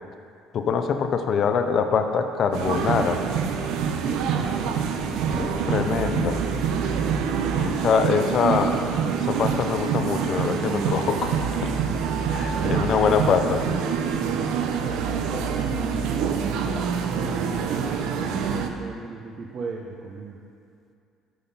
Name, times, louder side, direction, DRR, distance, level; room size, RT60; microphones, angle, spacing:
voice 1, 0.5-3.2 5.4-6.4 7.6-8.8 9.3-11.7 12.3-13.8, left 6 dB, 50° left, 7 dB, 0.5 m, -24 dB
sound 1, 2.5-18.7, right 6 dB, 80° right, 0.6 m, -26 dB
voice 2, 4.0-5.1 6.8-7.1 8.0-8.2 13.0-13.3 14.3-20.4, right 4 dB, 45° right, 0 dB, 0.7 m, -36 dB
sound 2, 5.0-5.8 6.4-9.8 10.0-13.9 14.1-16.5 16.9-17.6 18.4-18.6, equal, 20° right, 1.7 m, -44 dB
9.8 x 4.0 x 5.4 m, 2.4 s
cardioid pair, 115°, 0 cm